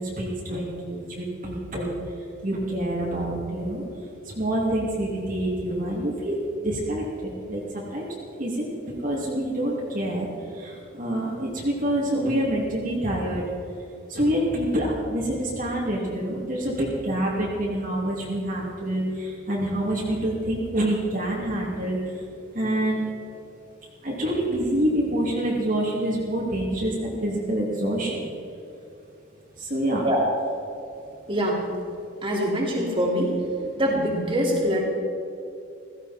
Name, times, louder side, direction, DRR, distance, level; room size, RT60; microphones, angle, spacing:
voice 1, 0.0-1.9 2.4-3.8 4.4-8.1 8.4-10.3 10.5-13.4 14.1-22.0 22.5-23.1 24.0-28.3 29.6-30.0, right 1 dB, 40° right, -5 dB, 2.6 m, -27 dB
voice 2, 31.3-31.6 32.2-33.3 33.8-34.8, equal, 25° right, -3 dB, 2.9 m, -23 dB
16.5 x 16.0 x 4.3 m, 2.7 s
head